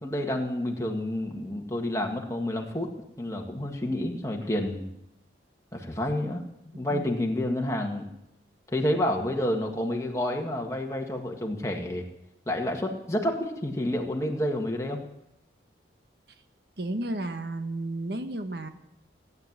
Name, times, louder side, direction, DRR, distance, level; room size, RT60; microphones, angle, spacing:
voice 1, 0.0-2.9 3.2-4.9 5.7-8.1 8.7-12.1 12.5-15.0, left 1 dB, 15° left, 1 dB, 1.8 m, -29 dB
voice 2, 6.7-7.1 16.8-18.7, right 1 dB, 60° right, 8 dB, 1.2 m, -33 dB
16.5 x 9.7 x 7.4 m, 0.83 s
head